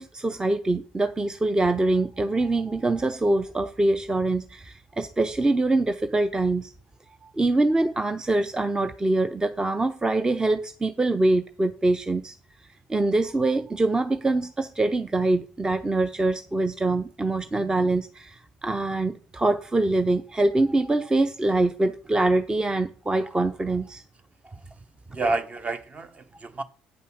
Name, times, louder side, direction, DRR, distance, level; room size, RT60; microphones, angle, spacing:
voice 1, 0.0-6.7 7.2-12.3 12.9-24.0, right 2 dB, 15° right, 0.7 m, -24 dB
voice 2, 25.1-26.6, right 3 dB, 35° right, 1.2 m, -29 dB
8.8 x 5.4 x 6.4 m
hypercardioid pair, 55°, 4 cm